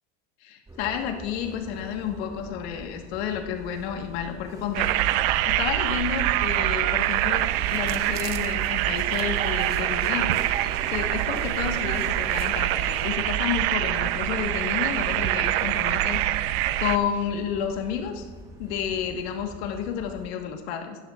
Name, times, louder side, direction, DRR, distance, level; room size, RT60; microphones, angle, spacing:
voice 1, 0.4-4.9 5.4-10.4 10.9-16.5 16.8-18.3 18.6-21.0, left 8 dB, 75° left, 4 dB, 1.3 m, -31 dB
sound 1, 0.7-20.3, right 1 dB, 10° right, 1.6 m, -44 dB
sound 2, 4.7-17.0, right 14 dB, 65° right, 0.6 m, -25 dB
sound 3, 7.3-13.1, right 7 dB, 30° right, 0.8 m, -39 dB
16.5 x 13.5 x 2.4 m, 1.4 s
supercardioid pair, 155°, 32 cm